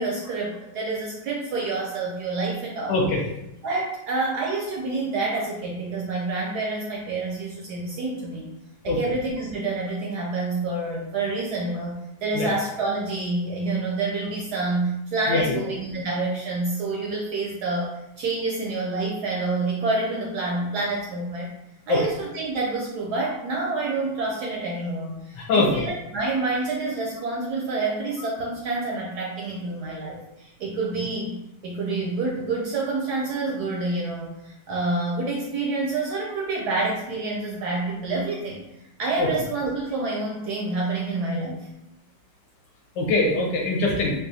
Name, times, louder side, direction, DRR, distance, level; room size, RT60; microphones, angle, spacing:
voice 1, 0.0-3.0 3.6-8.5 8.8-21.5 21.9-31.3 31.6-38.6 39.0-41.7, right 3 dB, 75° right, -2 dB, 0.9 m, -28 dB
voice 2, 2.9-3.2 8.9-9.0 12.3-12.5 15.3-15.6 21.9-22.0 25.5-25.7 39.2-39.3 43.0-44.1, left 3 dB, 70° left, 0 dB, 1.2 m, -22 dB
3.7 x 2.3 x 2.7 m, 0.85 s
omnidirectional pair, 2.1 m